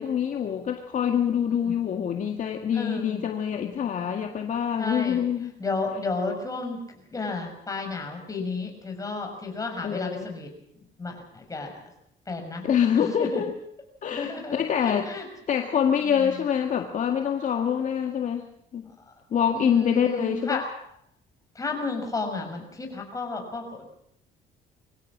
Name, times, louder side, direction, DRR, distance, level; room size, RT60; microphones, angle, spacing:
voice 1, 0.0-5.5 9.8-10.3 12.6-13.5 14.0-15.1 15.5-18.5 18.7-18.9 19.3-20.6, left 8 dB, 50° left, 4 dB, 1.9 m, -25 dB
voice 2, 1.4-1.8 2.7-3.3 3.6-3.8 4.8-5.2 5.6-10.5 11.0-11.9 12.3-12.6 12.9-13.4 14.1-14.5 14.8-15.3 16.0-16.4 19.5-20.6 21.5-23.9, left 3 dB, 20° left, 3 dB, 6.5 m, -32 dB
24.0 x 16.5 x 7.4 m, 0.74 s
cardioid pair, 110°, 17 cm